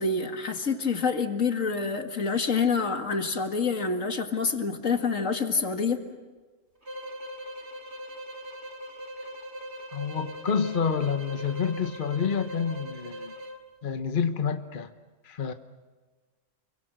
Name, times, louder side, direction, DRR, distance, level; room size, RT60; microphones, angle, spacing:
voice 1, 0.0-6.0, left 5 dB, 60° left, 6 dB, 2.3 m, -27 dB
sound 1, 6.8-13.6, equal, 50° right, 2.7 m, -40 dB
voice 2, 9.9-13.3 13.8-14.9 15.2-15.5, left 6 dB, 40° left, 8 dB, 1.1 m, -28 dB
29.5 x 23.0 x 7.8 m, 1.4 s
omnidirectional pair, 1.5 m